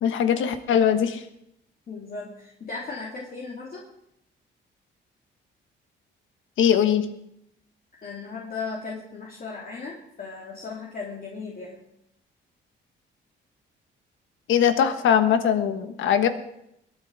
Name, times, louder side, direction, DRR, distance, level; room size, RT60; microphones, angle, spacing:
voice 1, 0.0-1.2 6.6-7.1 14.5-16.3, left 8 dB, 75° left, 9 dB, 1.4 m, -21 dB
voice 2, 1.9-3.8 8.0-11.8, left 4 dB, 45° left, -2 dB, 2.7 m, -36 dB
21.5 x 9.4 x 5.0 m, 0.79 s
cardioid pair, 90°, 20 cm